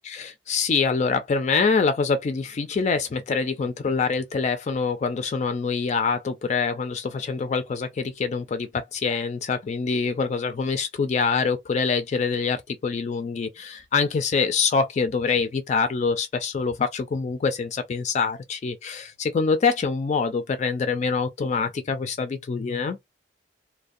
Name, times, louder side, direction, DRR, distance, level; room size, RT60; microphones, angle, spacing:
voice 1, 0.1-23.0, left 5 dB, 40° left, 0.3 m, -25 dB
2.5 x 2.0 x 2.5 m
head